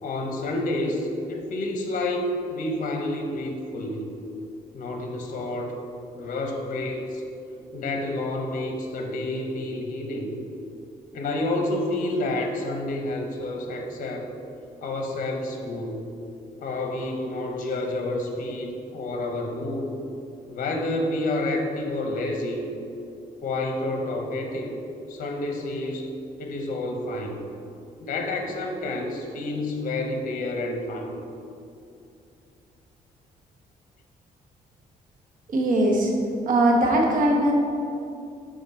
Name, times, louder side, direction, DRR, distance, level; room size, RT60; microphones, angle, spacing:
voice 1, 0.0-4.1 4.7-5.7 6.2-7.2 7.7-10.4 11.1-14.3 14.8-16.0 16.6-19.9 20.5-22.6 23.4-24.7 25.1-26.1 26.4-27.4 28.0-31.2, left 2 dB, 60° left, 3 dB, 0.8 m, -29 dB
voice 2, 35.5-36.1 36.5-37.5, right 1 dB, 60° right, 0 dB, 1.0 m, -20 dB
6.9 x 3.7 x 4.3 m, 2.6 s
cardioid pair, 105°, 16 cm